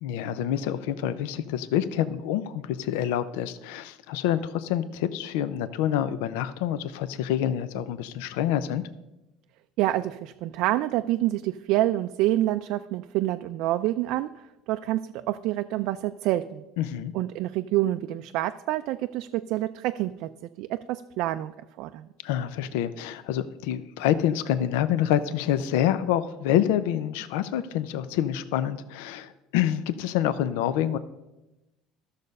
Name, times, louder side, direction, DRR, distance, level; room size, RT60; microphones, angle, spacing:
voice 1, 0.0-8.8 16.8-17.1 22.2-31.0, left 11 dB, 85° left, 13 dB, 0.5 m, -27 dB
voice 2, 9.8-16.6 17.1-20.3 20.6-22.1, right 15 dB, 65° right, 8 dB, 0.4 m, -27 dB
13.5 x 6.5 x 5.3 m, 1.0 s
cardioid pair, 135°, 0 cm